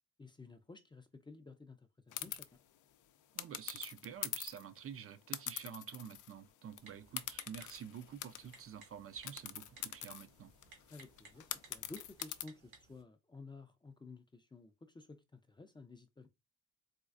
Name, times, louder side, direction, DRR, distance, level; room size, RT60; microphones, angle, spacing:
voice 1, 0.2-2.6 10.9-16.3, left 3 dB, 15° left, 0.4 m, -54 dB
sound 1, 2.1-2.5 3.4-4.7 5.3-6.4 6.7-6.8 7.2-8.6 9.3-12.4, left 12 dB, 75° left, 0.5 m, -44 dB
voice 2, 3.3-10.5, right 8 dB, 45° right, 0.4 m, -49 dB
Typing, 6.8-13.0, right 3 dB, 90° right, 1.5 m, -61 dB
4.2 x 2.4 x 2.4 m
cardioid pair, 115°, 31 cm